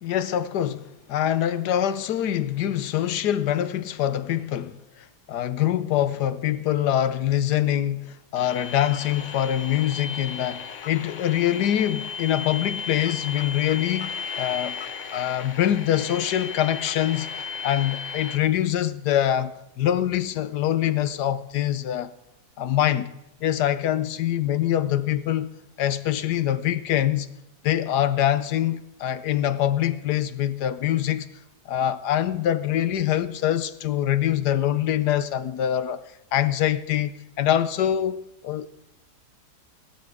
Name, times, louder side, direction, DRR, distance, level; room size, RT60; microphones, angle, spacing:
voice 1, 0.0-4.8 5.3-14.8 15.1-17.3 17.6-22.1 22.6-23.1 23.4-27.3 27.6-31.3 31.7-36.0 36.3-37.1 37.4-38.7, left 11 dB, 80° left, 1.4 m, -24 dB
sound 1, 8.4-18.4, left 5 dB, 55° left, 1.2 m, -35 dB
17.0 x 13.0 x 5.0 m
omnidirectional pair, 1.7 m